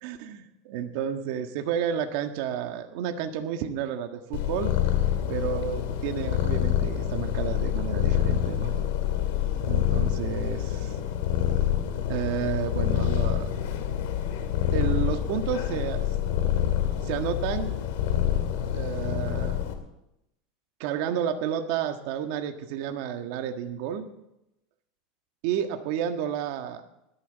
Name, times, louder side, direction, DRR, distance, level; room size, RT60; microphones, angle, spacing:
voice 1, 0.0-4.8 5.3-8.7 9.7-10.9 12.1-13.5 14.7-16.1 17.0-17.8 18.7-19.6 20.8-24.1 25.4-26.8, right 9 dB, 60° right, 6 dB, 1.5 m, -31 dB
Purr, 4.3-19.7, left 11 dB, 75° left, 2.3 m, -27 dB
19.5 x 12.5 x 4.1 m, 0.86 s
supercardioid pair, 145°, 0 cm